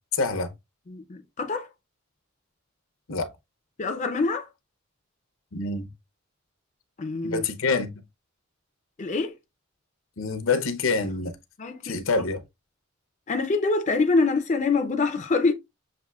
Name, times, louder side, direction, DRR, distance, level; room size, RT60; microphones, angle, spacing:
voice 1, 0.1-0.5 3.1-3.3 5.5-5.9 7.2-7.9 10.2-11.3 11.8-12.4, left 4 dB, 70° left, 0.7 m, -26 dB
voice 2, 0.9-1.7 3.8-4.5 7.0-7.5 9.0-9.3 11.6-12.0 13.3-15.5, left 3 dB, 35° left, 0.5 m, -25 dB
6.7 x 2.6 x 2.3 m
head